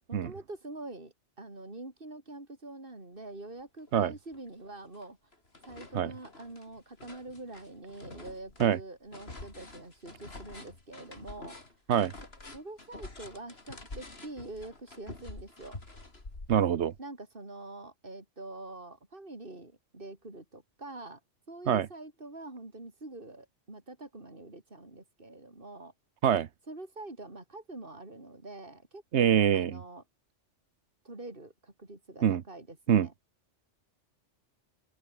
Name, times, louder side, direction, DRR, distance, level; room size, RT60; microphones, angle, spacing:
voice 1, 0.1-5.2 5.6-11.6 12.5-15.8 17.0-21.2 21.5-25.9 26.7-30.0 31.0-33.1, right 2 dB, 45° right, 4.7 m, -45 dB
sound 1, 3.9-4.0 4.3-5.1 5.3-17.0, left 2 dB, 55° left, 3.8 m, -47 dB
voice 2, 16.5-16.9 21.7-21.9 26.2-26.5 29.1-29.8 32.2-32.4 32.9-33.1, right 9 dB, 70° right, 1.2 m, -24 dB
omnidirectional pair, 1.2 m